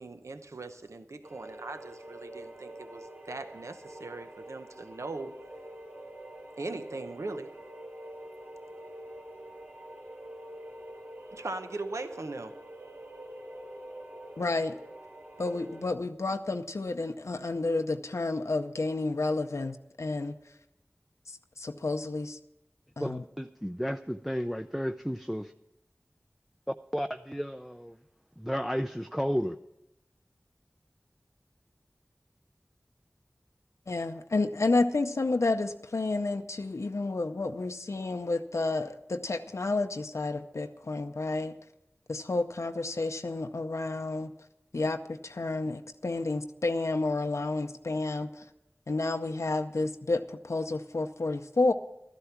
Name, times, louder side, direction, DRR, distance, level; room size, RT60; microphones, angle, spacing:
voice 1, 0.0-5.4 6.6-7.6 11.3-12.6, right 3 dB, 85° right, 8 dB, 0.7 m, -40 dB
sound 1, 1.2-15.9, right 1 dB, 45° right, 3.2 m, -46 dB
voice 2, 14.4-14.8 15.4-20.3 21.3-22.4 23.0-23.2 33.9-41.5 42.1-44.3 44.7-48.4 48.9-51.7, left 2 dB, 80° left, 6 dB, 0.6 m, -30 dB
voice 3, 23.0-25.5 26.9-27.9 28.4-29.6, equal, 5° right, 8 dB, 0.4 m, -32 dB
13.0 x 11.5 x 5.9 m, 0.88 s
wide cardioid pair, 40°, 5 cm